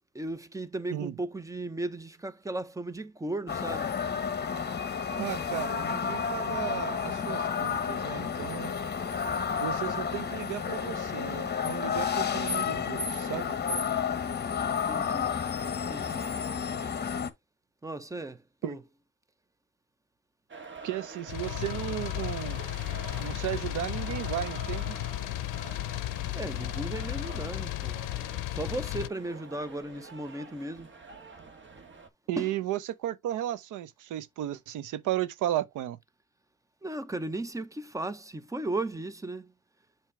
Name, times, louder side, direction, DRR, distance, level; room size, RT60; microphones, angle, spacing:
voice 1, 0.1-3.9 14.9-15.4 15.9-16.3 16.8-16.9 17.8-18.8 26.3-28.0 28.5-30.9 32.4-32.5 36.8-39.5, right 2 dB, 10° right, 0.8 m, -36 dB
sound 1, 3.5-17.3, left 6 dB, 35° left, 1.2 m, -31 dB
voice 2, 5.2-8.7 9.6-13.6 18.6-18.8 20.8-22.6 23.2-25.0 32.3-36.0, right 13 dB, 85° right, 0.8 m, -34 dB
sound 2, 20.5-32.1, right 4 dB, 40° right, 1.6 m, -46 dB
sound 3, 21.3-29.1, left 18 dB, 90° left, 0.5 m, -34 dB
7.5 x 3.0 x 4.7 m
cardioid pair, 90°, 30 cm